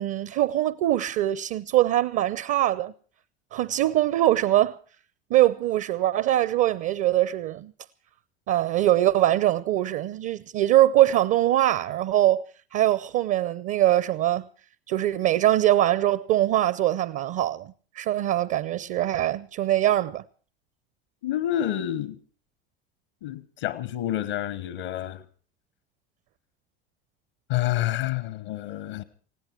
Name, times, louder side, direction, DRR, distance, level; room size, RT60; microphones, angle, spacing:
voice 1, 0.0-2.9 3.5-4.8 5.3-7.7 8.5-12.4 12.7-14.4 14.9-20.2, right 13 dB, 50° right, 0.7 m, -22 dB
voice 2, 21.2-22.2 23.2-25.2 27.5-29.0, left 12 dB, 65° left, 1.1 m, -28 dB
19.5 x 16.5 x 4.5 m
hypercardioid pair, 75°, 29 cm